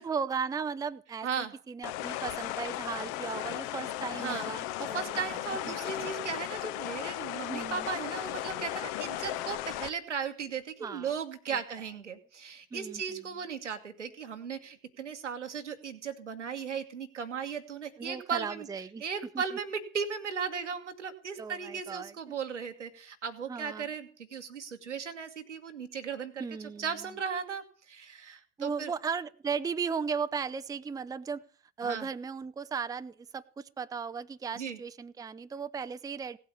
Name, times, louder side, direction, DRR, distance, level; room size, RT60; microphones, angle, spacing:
voice 1, 0.0-5.8 7.5-7.9 10.8-11.1 11.5-11.8 12.7-13.2 18.0-19.0 19.3-19.4 21.4-22.1 23.5-23.9 26.4-27.0 28.6-31.4 31.8-36.4, right 6 dB, 10° right, 12 dB, 0.6 m, -36 dB
voice 2, 1.2-1.5 4.2-4.5 4.8-18.7 19.0-26.5 26.8-28.9 31.8-32.1 34.5-34.8, right 6 dB, 80° right, 7 dB, 1.7 m, -36 dB
sound 1, 1.8-9.9, left 14 dB, 50° left, 1.0 m, -36 dB
17.5 x 8.4 x 7.2 m, 0.43 s
figure-of-eight pair, 70°, 35 cm